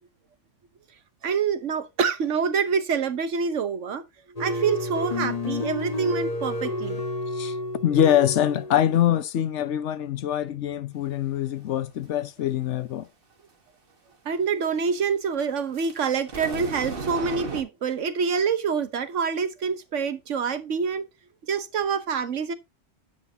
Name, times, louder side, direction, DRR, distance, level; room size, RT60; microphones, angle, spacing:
voice 1, 1.2-4.0 4.4-7.0 14.2-21.0 21.5-22.5, right 6 dB, 90° right, 1.4 m, -26 dB
sound 1, 4.4-9.0, left 2 dB, 35° left, 1.3 m, -30 dB
voice 2, 7.8-13.1, left 10 dB, 75° left, 1.1 m, -24 dB
sound 2, 15.7-17.6, right 4 dB, 50° right, 1.6 m, -34 dB
9.8 x 8.3 x 2.8 m
omnidirectional pair, 1.2 m